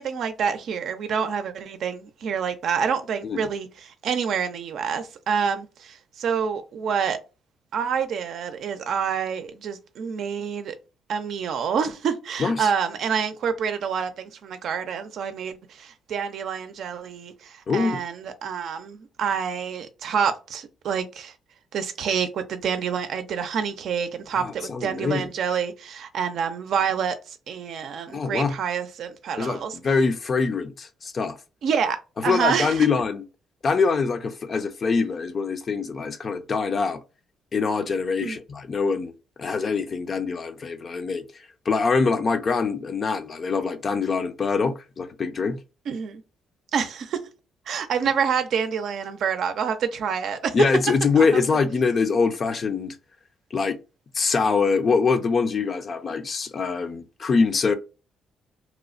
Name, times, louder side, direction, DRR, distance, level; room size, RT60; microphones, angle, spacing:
voice 1, 0.0-7.2 7.7-10.8 11.1-21.3 21.7-29.8 31.6-32.9 38.2-38.4 45.9-46.2 46.7-47.2 47.7-50.6 51.1-51.4, right 7 dB, 70° right, 0.5 m, -27 dB
voice 2, 17.7-18.0 24.3-25.3 28.1-28.6 29.4-29.6 29.8-31.4 32.3-33.2 33.6-37.0 37.5-39.1 39.4-41.2 41.7-45.6 50.5-52.9 53.5-53.8 54.1-57.7, left 4 dB, 45° left, 0.5 m, -24 dB
2.9 x 2.0 x 2.4 m
cardioid pair, 90°, 0 cm